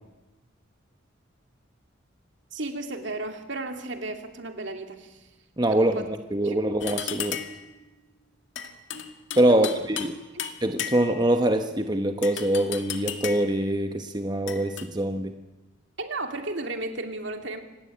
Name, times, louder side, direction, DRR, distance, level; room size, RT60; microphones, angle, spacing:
voice 1, 2.5-5.2 5.7-6.1 6.4-6.6 9.4-9.8 10.3-10.5 16.0-17.6, right 2 dB, 65° right, 5 dB, 2.7 m, -34 dB
voice 2, 5.6-7.4 9.4-10.1 10.6-15.3, right 1 dB, 20° right, 6 dB, 1.0 m, -24 dB
sound 1, 6.8-7.7 8.6-10.1 10.4-11.3 12.2-13.6 14.5-14.9, left 8 dB, 65° left, 2.0 m, -34 dB
26.0 x 19.5 x 8.6 m, 1.1 s
head